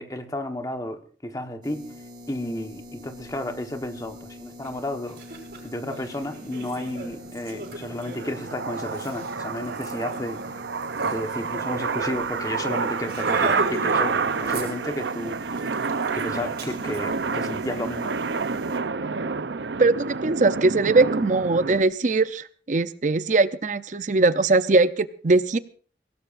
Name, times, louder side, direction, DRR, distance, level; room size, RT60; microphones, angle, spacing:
voice 1, 0.0-1.9 2.3-5.2 5.6-10.4 11.0-15.9 16.1-18.2, left 1 dB, 20° left, 6 dB, 1.2 m, -32 dB
sound 1, 1.6-18.8, left 1 dB, 25° right, 2.1 m, -44 dB
Laughter, 4.6-4.7 5.1-11.7 12.0-12.2 12.4-12.6 13.0-14.0 14.3-15.1 15.5-17.0, right 2 dB, 60° right, 5.6 m, -37 dB
sound 2, 6.5-21.8, right 4 dB, 85° right, 0.7 m, -29 dB
voice 2, 19.8-25.6, right 3 dB, 45° right, 14 dB, 0.6 m, -21 dB
23.5 x 17.5 x 2.6 m, 0.42 s
head